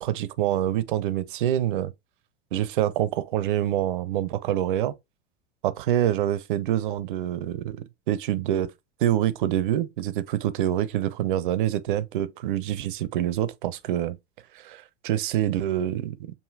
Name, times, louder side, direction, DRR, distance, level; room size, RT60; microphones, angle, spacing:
voice 1, 0.0-1.9 2.5-4.9 5.6-7.8 8.1-8.7 9.0-14.2 14.5-16.2, right 12 dB, 55° right, 0.6 m, -26 dB
4.8 x 2.6 x 2.4 m
figure-of-eight pair, 90°, 32 cm